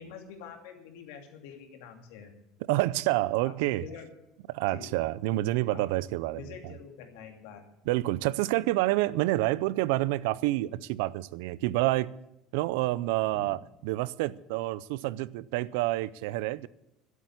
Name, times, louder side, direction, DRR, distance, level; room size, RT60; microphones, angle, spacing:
voice 1, 0.0-2.3 3.4-3.5 3.8-4.1 4.7-5.0 5.7-5.9 6.3-7.6 13.3-13.5, left 7 dB, 85° left, 2.6 m, -46 dB
voice 2, 2.7-3.8 4.5-6.4 7.9-12.1 12.5-16.7, right 17 dB, 80° right, 0.5 m, -28 dB
12.0 x 8.3 x 9.8 m
cardioid pair, 180°, 0 cm